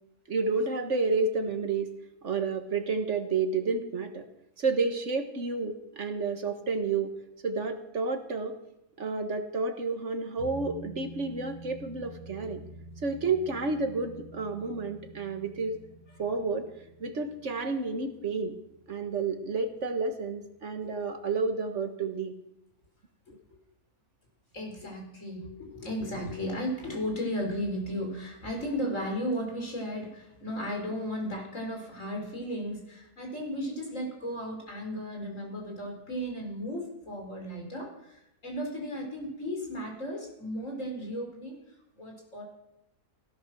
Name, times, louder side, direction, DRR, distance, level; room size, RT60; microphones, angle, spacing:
voice 1, 0.3-1.9 2.2-4.2 4.6-7.1 7.4-8.5 9.0-12.6 13.0-15.7 16.2-16.7 17.0-18.6 18.9-22.3, right 4 dB, 55° right, 6 dB, 1.8 m, -30 dB
sound 1, 10.4-19.5 19.8-19.9, right 2 dB, 35° right, 3.4 m, -48 dB
voice 2, 24.5-41.6 41.9-42.4, equal, 55° left, 1 dB, 4.9 m, -35 dB
16.5 x 11.5 x 6.3 m, 0.84 s
omnidirectional pair, 1.5 m